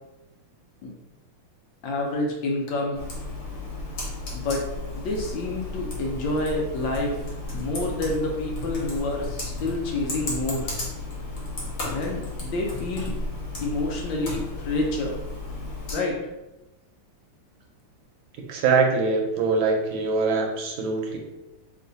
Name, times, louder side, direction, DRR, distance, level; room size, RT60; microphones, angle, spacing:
voice 1, 1.8-3.0 4.3-4.7 5.0-7.2 7.5-10.7 11.9-13.1 13.6-15.2 15.9-16.2, left 2 dB, 70° left, 0 dB, 1.3 m, -28 dB
Computer keyboard, 2.9-15.9, left 2 dB, 55° left, 1.5 m, -33 dB
voice 2, 18.5-21.2, right 4 dB, 75° right, 1 dB, 1.3 m, -23 dB
3.2 x 3.0 x 3.9 m, 0.99 s
omnidirectional pair, 2.4 m